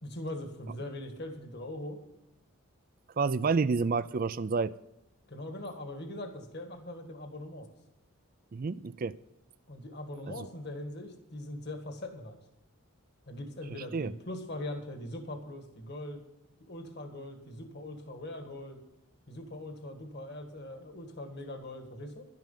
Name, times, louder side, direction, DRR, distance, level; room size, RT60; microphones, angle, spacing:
voice 1, 0.0-2.0 5.3-7.7 9.7-12.4 13.3-16.2 16.7-18.8 19.3-22.3, left 1 dB, 50° left, 5 dB, 1.7 m, -41 dB
voice 2, 3.2-4.7 8.5-9.1 10.3-10.5 13.9-14.1, right 4 dB, 40° right, 15 dB, 0.4 m, -29 dB
12.0 x 10.5 x 5.5 m, 0.88 s
head